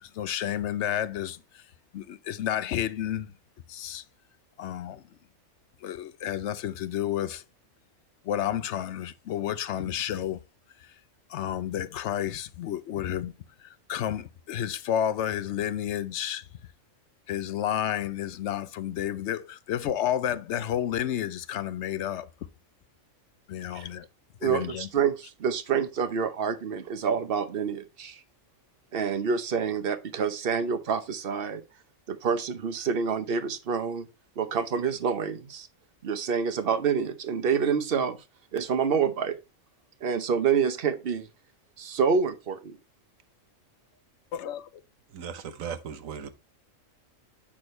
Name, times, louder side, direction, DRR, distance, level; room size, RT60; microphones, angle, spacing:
voice 1, 0.0-1.6 1.9-3.3 3.7-4.0 4.6-5.0 5.8-7.4 8.2-10.4 10.8-10.9 11.3-13.3 13.6-16.5 17.3-22.3 23.5-24.1 24.4-24.9 44.3-44.7, left 10 dB, 65° left, 0.9 m, -31 dB
voice 2, 24.4-28.2 28.9-31.6 32.1-34.1 34.4-35.7 36.0-38.2 38.5-39.4 40.0-41.3 41.8-42.8, right 6 dB, 50° right, 1.0 m, -27 dB
voice 3, 45.1-46.3, right 7 dB, 80° right, 1.3 m, -37 dB
8.7 x 6.2 x 3.2 m
omnidirectional pair, 1.4 m